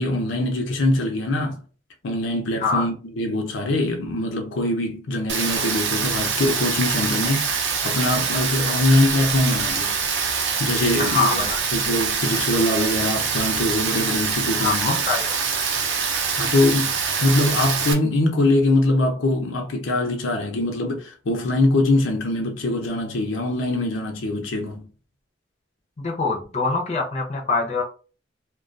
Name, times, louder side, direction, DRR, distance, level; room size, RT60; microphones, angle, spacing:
voice 1, 0.0-1.6 2.0-10.0 10.6-11.4 11.7-14.9 16.4-16.9 17.2-24.8, left 1 dB, 85° left, 0.6 m, -23 dB
Rain, 5.3-17.9, right 6 dB, 70° right, 0.5 m, -24 dB
voice 2, 11.0-11.6 14.6-15.4 26.0-27.8, left 4 dB, 35° left, 0.5 m, -24 dB
2.2 x 2.2 x 2.5 m
head